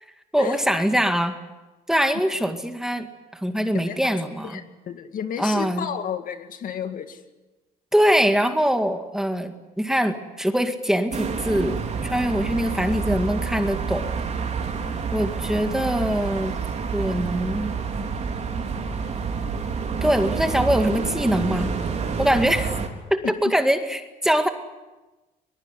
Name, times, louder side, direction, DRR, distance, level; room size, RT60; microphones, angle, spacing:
voice 1, 0.3-1.4 1.9-3.1 3.4-4.6 5.4-5.9 7.9-14.1 15.1-16.5 16.9-17.7 20.0-21.7 22.2-22.7 23.1-24.5, equal, 5° right, 6 dB, 2.1 m, -23 dB
voice 2, 3.7-4.1 4.4-7.2 23.2-23.3, left 8 dB, 55° left, 8 dB, 2.2 m, -32 dB
sound 1, 11.1-22.9, right 5 dB, 40° right, 4.0 m, -28 dB
22.0 x 22.0 x 9.9 m, 1.1 s
cardioid pair, 110°, 17 cm